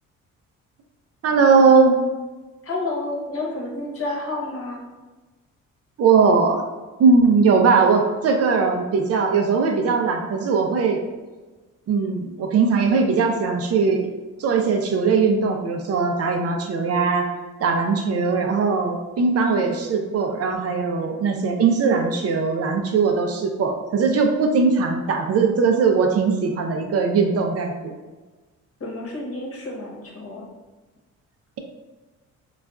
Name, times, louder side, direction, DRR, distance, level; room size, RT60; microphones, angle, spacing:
voice 1, 1.2-2.0 6.0-6.6 7.0-11.0 11.9-14.1 14.4-17.3 17.6-27.9, right 5 dB, 55° right, 3 dB, 0.5 m, -19 dB
voice 2, 2.6-4.8 28.8-30.4, left 2 dB, 50° left, -2 dB, 1.0 m, -30 dB
3.9 x 2.3 x 2.3 m, 1.2 s
cardioid pair, 90°, 30 cm